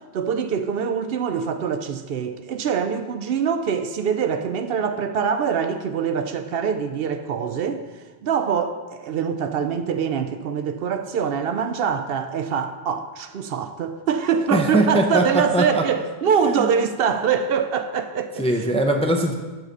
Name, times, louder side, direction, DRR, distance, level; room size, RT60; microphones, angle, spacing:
voice 1, 0.1-7.8 8.2-18.5, right 7 dB, 70° right, 0.7 m, -24 dB
voice 2, 14.5-15.8 16.5-16.7 18.4-19.3, right 1 dB, 10° left, 0.4 m, -21 dB
7.4 x 4.8 x 6.5 m
omnidirectional pair, 1.1 m